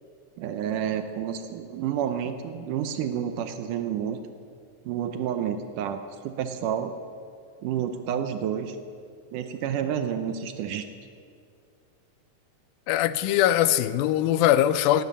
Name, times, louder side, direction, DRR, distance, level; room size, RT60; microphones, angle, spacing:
voice 1, 0.4-4.2 4.8-7.0 7.6-8.8 9.3-10.8, right 9 dB, 75° right, 8 dB, 2.1 m, -30 dB
voice 2, 12.9-15.0, left 12 dB, 90° left, 14 dB, 2.4 m, -21 dB
18.5 x 10.5 x 7.3 m, 2.3 s
omnidirectional pair, 4.1 m